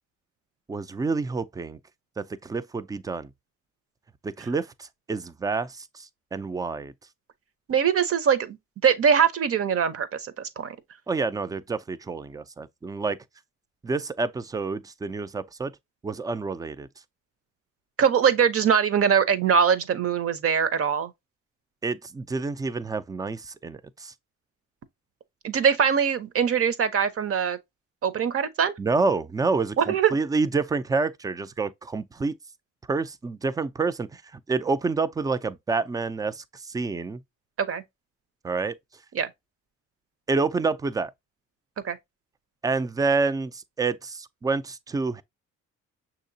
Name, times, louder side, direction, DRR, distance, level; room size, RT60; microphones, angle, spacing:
voice 1, 0.7-1.8 2.2-3.3 4.2-6.9 11.1-13.2 13.8-15.7 16.0-16.9 21.8-24.1 28.8-32.4 32.9-37.2 38.4-38.7 40.3-41.1 42.6-45.2, right 4 dB, 15° right, 0.3 m, -28 dB
voice 2, 7.7-8.6 8.8-10.8 18.0-21.1 25.4-27.6 28.0-28.7 29.8-30.2 37.6-37.8 39.1-39.3 41.8-42.0, right 7 dB, 50° right, 0.8 m, -22 dB
6.3 x 2.9 x 2.6 m
cardioid pair, 90°, 30 cm